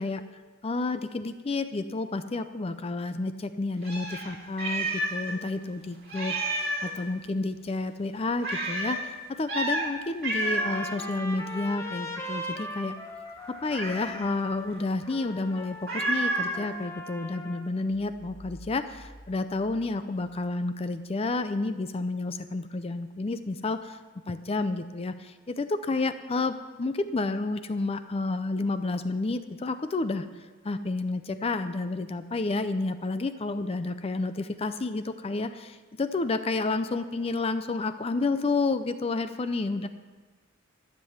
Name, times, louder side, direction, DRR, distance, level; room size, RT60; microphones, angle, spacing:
voice 1, 0.6-12.9 13.5-24.0 24.3-30.3 30.6-39.9, left 3 dB, 30° left, 10 dB, 0.5 m, -30 dB
Meow, 3.8-5.3 5.6-5.7 6.1-7.0 8.4-9.0 9.5-9.9 10.2-10.8 13.7-14.3 15.9-16.6, right 2 dB, 55° right, 2.4 m, -30 dB
Trumpet, 10.4-17.7, left 1 dB, 15° left, 1.1 m, -39 dB
sound 1, 17.9-20.7, equal, 10° right, 1.8 m, -51 dB
13.0 x 7.6 x 7.2 m, 1.3 s
head